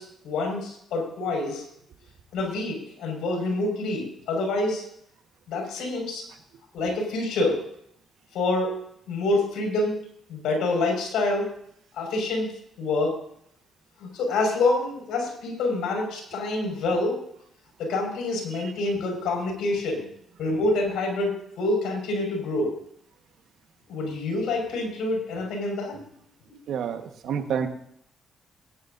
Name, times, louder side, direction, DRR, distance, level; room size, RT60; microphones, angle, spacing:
voice 1, 0.0-1.6 2.3-4.9 5.5-6.3 6.7-7.6 8.3-8.8 9.1-10.0 10.3-11.5 11.9-12.5 12.8-13.2 14.0-17.2 17.8-20.1 20.4-22.8 23.9-26.0, left 2 dB, 80° left, 1 dB, 5.6 m, -27 dB
voice 2, 26.7-27.7, right 7 dB, 75° right, 6 dB, 1.5 m, -28 dB
21.5 x 10.5 x 2.7 m, 0.69 s
cardioid pair, 90°, 0 cm